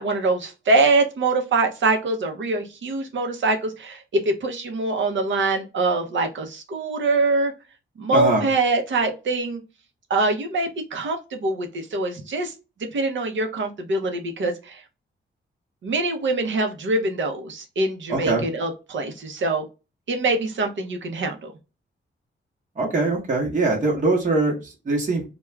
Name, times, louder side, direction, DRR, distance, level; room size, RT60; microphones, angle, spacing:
voice 1, 0.0-7.5 8.0-9.6 10.1-12.5 12.9-14.8 15.8-19.6 20.1-21.5, right 3 dB, 65° right, 5 dB, 0.7 m, -24 dB
voice 2, 8.1-8.4 18.1-18.5 22.8-25.2, right 2 dB, 40° right, -2 dB, 0.9 m, -22 dB
2.3 x 2.3 x 3.0 m, 0.29 s
wide cardioid pair, 130°, 21 cm